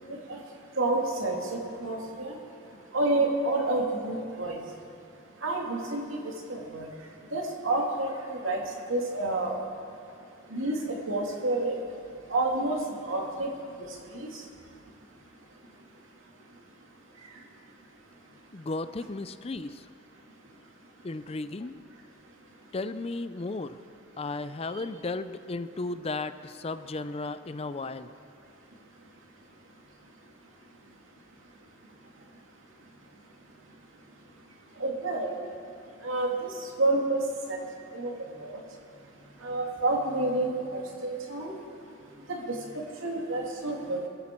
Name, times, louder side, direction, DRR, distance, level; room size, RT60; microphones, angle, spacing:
voice 1, 0.8-2.3 2.9-4.6 5.4-6.2 6.5-6.9 7.3-8.6 8.9-9.5 10.5-11.7 12.3-13.5 13.8-14.4 34.8-35.4 36.0-37.2 37.5-37.6 37.9-38.1 38.4-38.6 39.4-41.5 42.3-42.6 43.0-44.1, right 2 dB, 85° right, 0 dB, 2.5 m, -29 dB
voice 2, 18.5-19.8 21.0-21.8 22.7-23.8 24.2-28.1, left 3 dB, 30° left, 12 dB, 0.5 m, -34 dB
22.0 x 14.5 x 4.5 m, 2.5 s
head